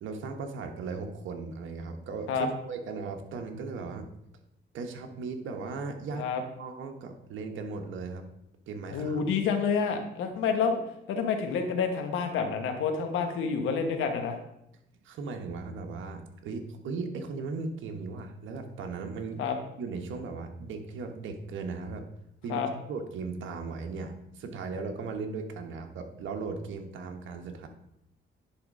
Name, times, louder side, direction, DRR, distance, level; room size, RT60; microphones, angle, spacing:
voice 1, 0.0-4.1 4.7-6.3 6.6-8.2 8.7-9.2 15.0-19.4 19.8-22.0 22.4-27.7, right 4 dB, 75° right, 4 dB, 1.2 m, -37 dB
voice 2, 8.9-10.8 11.1-14.4 19.4-19.5 22.5-22.7, left 6 dB, 85° left, 5 dB, 1.2 m, -28 dB
10.0 x 3.6 x 5.4 m, 0.81 s
cardioid pair, 90°, 20 cm